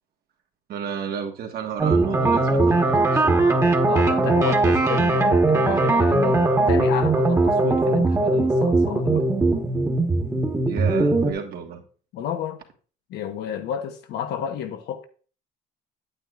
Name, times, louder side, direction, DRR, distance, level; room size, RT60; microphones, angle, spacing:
voice 1, 0.7-3.5 10.7-11.8, right 7 dB, 65° right, 1.5 m, -32 dB
sound 1, 1.8-11.3, right 2 dB, 15° right, 1.2 m, -20 dB
voice 2, 3.9-9.3 12.1-12.6 13.1-15.1, left 8 dB, 85° left, 1.1 m, -31 dB
8.9 x 8.7 x 2.4 m
cardioid pair, 110°, 17 cm